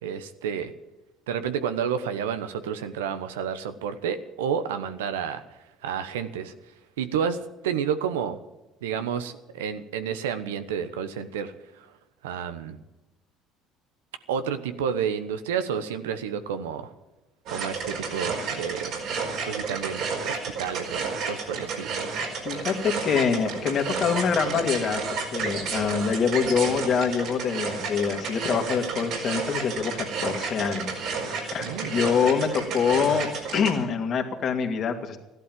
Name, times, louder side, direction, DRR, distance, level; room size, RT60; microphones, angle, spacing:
voice 1, 0.0-0.7 1.3-5.4 5.8-6.5 7.0-8.4 8.8-11.5 12.2-12.8 14.3-16.9 17.5-18.9 19.5-21.9 31.6-31.9, right 7 dB, 90° right, 10 dB, 1.0 m, -30 dB
sound 1, 17.5-33.7, right 5 dB, 65° right, 4.9 m, -31 dB
voice 2, 22.4-31.0 31.3-35.2, left 6 dB, 50° left, 4 dB, 2.4 m, -25 dB
14.5 x 12.0 x 7.6 m, 1.0 s
hypercardioid pair, 70°, 0 cm